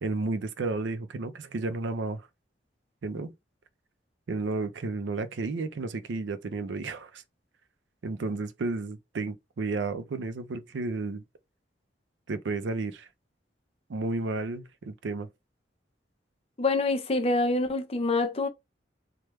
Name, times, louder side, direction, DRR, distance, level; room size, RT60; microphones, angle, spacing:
voice 1, 0.0-2.3 3.0-3.3 4.3-7.2 8.0-11.2 12.3-13.1 13.9-15.3, right 3 dB, 80° right, 0.5 m, -32 dB
voice 2, 16.6-18.5, left 2 dB, 35° left, 0.5 m, -26 dB
3.3 x 2.2 x 3.0 m
head